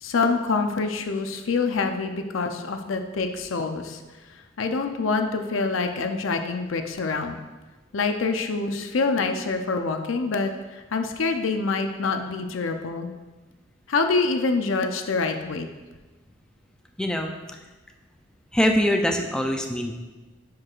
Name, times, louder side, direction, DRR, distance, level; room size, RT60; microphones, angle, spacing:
voice 1, 0.0-4.0 4.6-7.4 7.9-10.5 10.9-13.1 13.9-15.7, left 4 dB, 80° left, 6 dB, 0.6 m, -26 dB
voice 2, 17.0-17.3 18.5-19.9, equal, 5° left, 3 dB, 0.4 m, -23 dB
10.5 x 4.7 x 2.4 m, 1.2 s
head